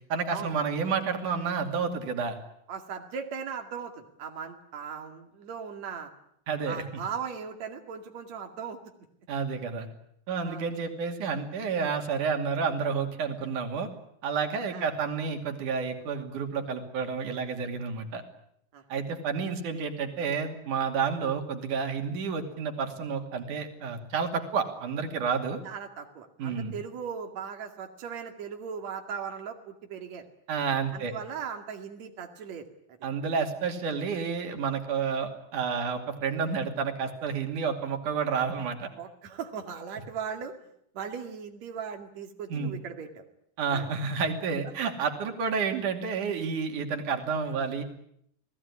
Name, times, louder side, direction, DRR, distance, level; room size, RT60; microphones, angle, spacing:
voice 1, 0.1-2.4 6.5-6.8 9.3-9.9 10.3-13.9 14.2-18.2 18.9-25.6 26.4-26.8 30.5-31.1 33.0-38.9 42.5-42.7 43.6-47.8, right 5 dB, 90° right, 5 dB, 4.1 m, -30 dB
voice 2, 2.7-6.1 6.7-8.8 10.4-10.7 14.7-14.8 18.7-18.8 25.6-30.2 30.9-33.0 39.0-40.6 40.9-43.2 43.7-43.9, right 7 dB, 65° right, 4 dB, 3.5 m, -38 dB
29.5 x 19.0 x 9.8 m, 0.74 s
omnidirectional pair, 3.4 m